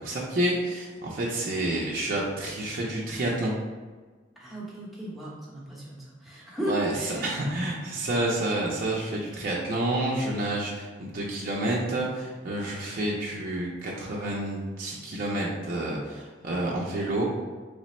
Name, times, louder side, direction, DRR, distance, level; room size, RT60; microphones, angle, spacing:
voice 1, 0.0-3.5 6.6-17.2, right 1 dB, 50° right, -4 dB, 0.4 m, -29 dB
voice 2, 4.4-7.3, right 1 dB, ahead, -8 dB, 0.8 m, -35 dB
3.2 x 2.0 x 4.1 m, 1.4 s
head